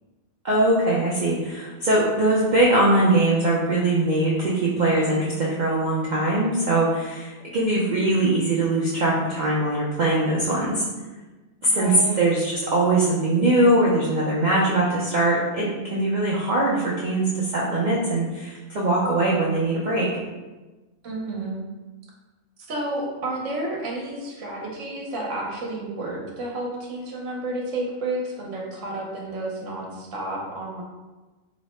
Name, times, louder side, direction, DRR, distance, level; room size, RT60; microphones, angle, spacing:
voice 1, 0.4-10.8 11.6-20.1, right 2 dB, 90° right, -5 dB, 0.4 m, -21 dB
voice 2, 11.6-12.2 21.0-21.6 22.7-30.8, right 2 dB, 65° right, -2 dB, 1.0 m, -31 dB
3.1 x 2.0 x 4.2 m, 1.2 s
omnidirectional pair, 1.5 m